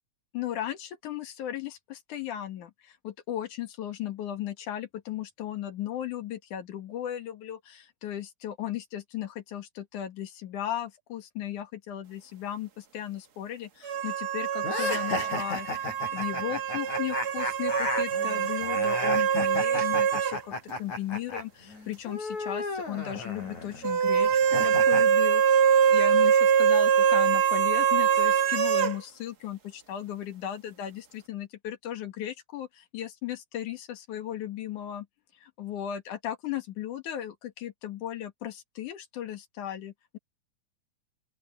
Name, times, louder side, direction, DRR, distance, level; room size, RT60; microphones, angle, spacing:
voice 1, 0.3-25.4 25.9-35.1 35.4-40.2, left 11 dB, 85° left, 3.2 m, -36 dB
sound 1, 13.8-20.4 20.7-20.8 23.8-28.9, right 8 dB, 55° right, 1.1 m, -24 dB
sound 2, 14.6-21.4 21.7-25.0, left 2 dB, 70° left, 8.2 m, -34 dB
open air
omnidirectional pair, 3.5 m